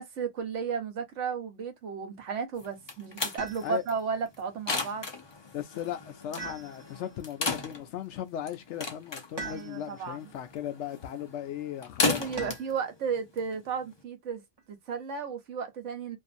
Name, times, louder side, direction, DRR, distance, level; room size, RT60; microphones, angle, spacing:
voice 1, 0.0-5.1 9.4-10.2 12.0-14.4 14.7-16.2, right 6 dB, 75° right, 1.1 m, -34 dB
sound 1, 2.6-14.0, left 4 dB, 35° left, 0.4 m, -36 dB
sound 2, 3.4-4.0 6.4-7.2 9.4-10.1 12.4-12.9 14.6-15.2, right 4 dB, 25° right, 0.8 m, -42 dB
voice 2, 5.5-12.6, left 10 dB, 70° left, 0.8 m, -37 dB
2.5 x 2.5 x 2.5 m
omnidirectional pair, 1.3 m